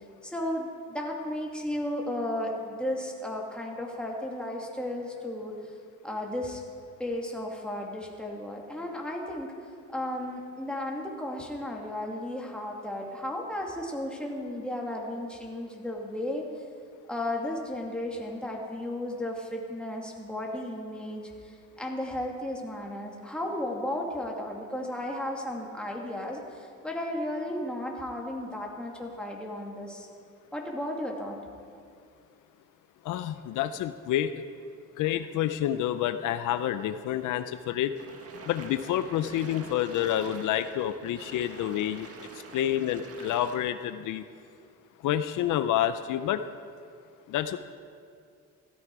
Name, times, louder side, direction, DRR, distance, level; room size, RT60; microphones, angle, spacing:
voice 1, 0.2-5.7 6.0-6.6 7.0-9.5 9.9-16.5 17.1-30.1 30.5-31.4, left 1 dB, 5° left, -1 dB, 2.6 m, -34 dB
voice 2, 33.0-34.4 35.0-37.9 38.4-42.1 42.5-44.2 45.0-46.4 47.3-47.6, left 11 dB, 85° left, 11 dB, 0.6 m, -28 dB
sound 1, 37.9-43.6, right 4 dB, 50° right, 1.7 m, -46 dB
16.0 x 13.5 x 4.8 m, 2.3 s
cardioid pair, 90°, 30 cm